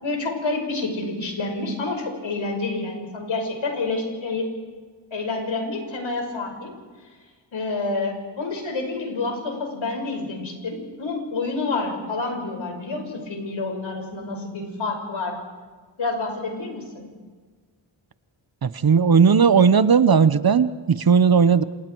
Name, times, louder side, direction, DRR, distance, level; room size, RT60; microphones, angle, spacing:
voice 1, 0.0-4.5 5.1-6.8 7.5-15.4 16.0-17.1, left 3 dB, 80° left, 3 dB, 5.7 m, -28 dB
voice 2, 18.6-21.6, right 6 dB, 50° right, 14 dB, 0.9 m, -16 dB
28.5 x 27.5 x 4.6 m, 1.5 s
wide cardioid pair, 95°, 45 cm